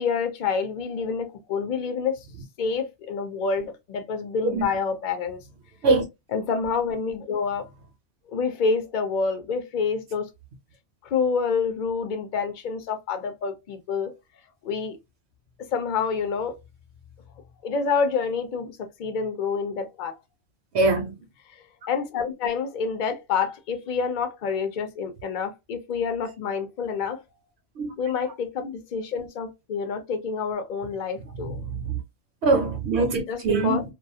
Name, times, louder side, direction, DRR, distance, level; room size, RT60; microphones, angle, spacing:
voice 1, 0.0-2.1 2.6-5.4 6.3-7.7 8.3-10.3 11.1-14.1 14.6-15.0 15.7-16.6 17.6-20.2 21.9-27.2 28.0-31.7 33.3-33.8, left 5 dB, 55° left, 0.6 m, -27 dB
voice 2, 20.7-21.1 27.8-27.9 31.4-32.0 32.4-33.8, right 3 dB, 70° right, 0.9 m, -23 dB
2.4 x 2.3 x 2.6 m
omnidirectional pair, 1.2 m